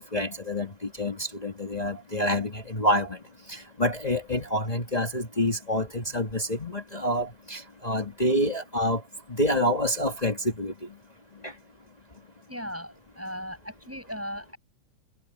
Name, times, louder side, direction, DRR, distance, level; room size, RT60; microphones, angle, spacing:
voice 1, 0.0-3.2 3.5-9.0 9.3-10.7 11.4-11.5, equal, 40° left, 0.5 m, -27 dB
voice 2, 12.5-14.6, equal, 5° right, 7.8 m, -37 dB
omnidirectional pair, 3.6 m